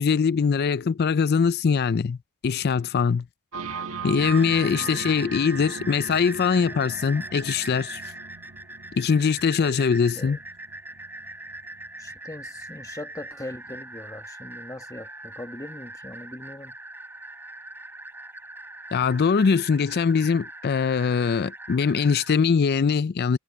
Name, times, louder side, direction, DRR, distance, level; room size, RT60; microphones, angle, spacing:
voice 1, 0.0-2.2 2.4-3.3 4.0-8.0 8.9-10.4 18.9-23.4, left 5 dB, 50° left, 0.4 m, -22 dB
sound 1, 3.5-13.2, right 5 dB, 75° right, 1.6 m, -39 dB
sound 2, 4.2-22.3, right 2 dB, 10° right, 3.8 m, -41 dB
voice 2, 4.7-5.2 10.1-10.4 12.0-16.8, left 1 dB, 15° left, 1.2 m, -40 dB
head